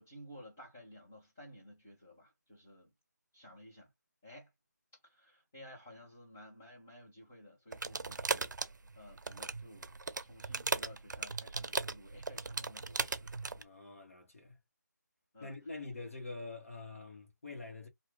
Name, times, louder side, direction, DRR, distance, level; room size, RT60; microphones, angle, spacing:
voice 1, 0.0-2.9 3.3-3.9 4.2-4.5 5.0-9.9 10.2-13.3 15.3-15.5, left 1 dB, 5° left, 0.4 m, -55 dB
sound 1, 7.7-13.6, right 4 dB, 80° right, 0.5 m, -37 dB
voice 2, 13.5-14.6 15.4-17.9, left 3 dB, 50° left, 1.2 m, -46 dB
2.6 x 2.3 x 3.0 m
figure-of-eight pair, 175°, 10 cm